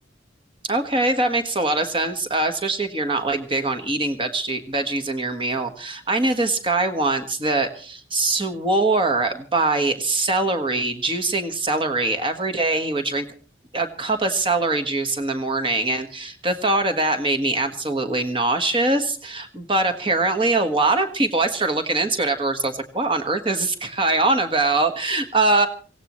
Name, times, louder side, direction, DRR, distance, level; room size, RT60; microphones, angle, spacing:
voice 1, 0.6-13.2 13.7-25.7, right 2 dB, 25° right, 7 dB, 1.4 m, -23 dB
24.5 x 17.0 x 3.1 m, 0.40 s
head